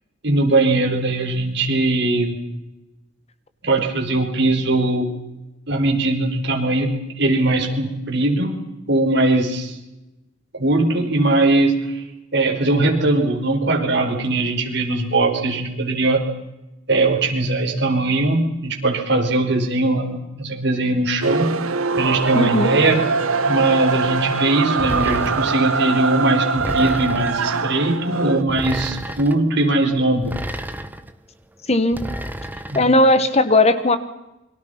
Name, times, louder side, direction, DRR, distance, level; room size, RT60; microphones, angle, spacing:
voice 1, 0.2-2.3 3.6-5.1 5.7-8.6 8.9-9.8 10.5-12.0 12.3-16.2 16.9-21.5 22.0-23.0 23.5-30.3 32.7-32.8, right 2 dB, 55° right, 1 dB, 5.5 m, -20 dB
sound 1, 21.2-28.4, right 4 dB, 90° right, 1.1 m, -22 dB
voice 2, 22.3-22.8 31.7-32.0 32.7-34.0, left 1 dB, 30° left, 11 dB, 1.4 m, -16 dB
sound 2, 24.8-25.7 26.6-27.5 28.5-29.4 30.2-31.1 31.9-32.9, right 1 dB, 10° right, 1.1 m, -30 dB
29.0 x 24.5 x 5.9 m, 0.97 s
head